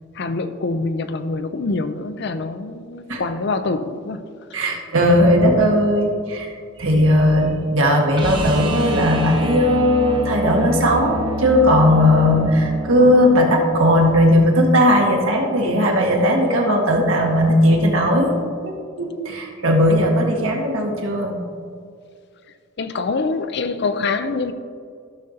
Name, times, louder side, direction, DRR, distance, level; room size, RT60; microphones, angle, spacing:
voice 1, 0.1-4.2 22.8-24.5, left 3 dB, 50° left, 0.4 m, -25 dB
voice 2, 4.5-18.3 18.6-21.4, equal, 70° right, 1.5 m, -17 dB
sound 1, 8.2-14.1 16.6-16.7, equal, 20° right, 0.9 m, -27 dB
14.0 x 6.5 x 2.8 m
head